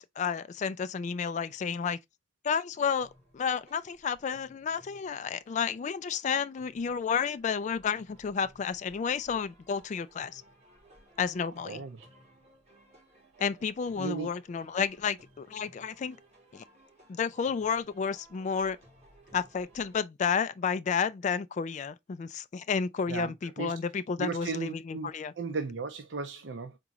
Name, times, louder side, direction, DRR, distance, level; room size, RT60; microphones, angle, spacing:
voice 1, 0.0-2.0 2.4-3.1 3.3-10.4 11.2-11.8 13.4-16.2 16.5-16.6 17.1-18.8 19.3-25.3, left 6 dB, 40° left, 0.3 m, -31 dB
sound 1, 2.8-20.0, right 1 dB, 35° right, 2.3 m, -60 dB
voice 2, 11.5-12.1 14.0-14.3 23.1-23.7 24.2-26.8, right 4 dB, 80° right, 0.6 m, -36 dB
3.8 x 3.7 x 2.9 m
head